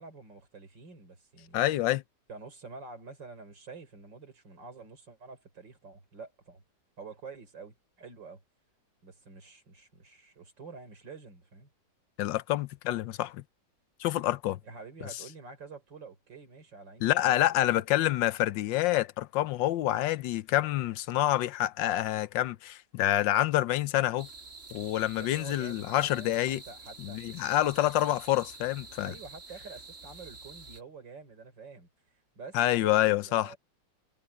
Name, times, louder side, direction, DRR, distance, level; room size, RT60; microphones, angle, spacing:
voice 1, 0.0-1.6 2.3-6.6 7.0-8.4 9.0-11.7 14.6-17.8 25.1-27.2 27.8-28.1 29.0-31.9 32.4-33.6, right 4 dB, 75° right, 5.0 m, -48 dB
voice 2, 1.5-2.0 12.2-13.4 14.0-14.6 17.0-24.3 24.7-26.6 27.0-29.1 32.5-33.5, left 14 dB, 85° left, 1.4 m, -27 dB
sound 1, 24.2-30.8, right 3 dB, 40° right, 3.2 m, -48 dB
omnidirectional pair, 2.0 m